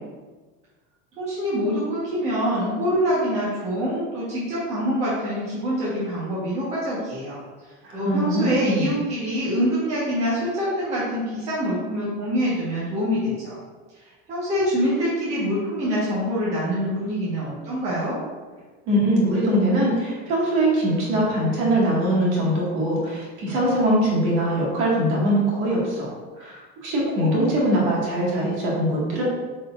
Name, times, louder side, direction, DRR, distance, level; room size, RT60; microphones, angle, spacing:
voice 1, 1.2-13.5 14.0-18.2, equal, 20° right, -9 dB, 1.3 m, -25 dB
voice 2, 7.8-8.9 18.9-29.2, right 1 dB, 40° right, -5 dB, 1.9 m, -22 dB
8.7 x 4.3 x 2.5 m, 1.3 s
supercardioid pair, 180°, 30 cm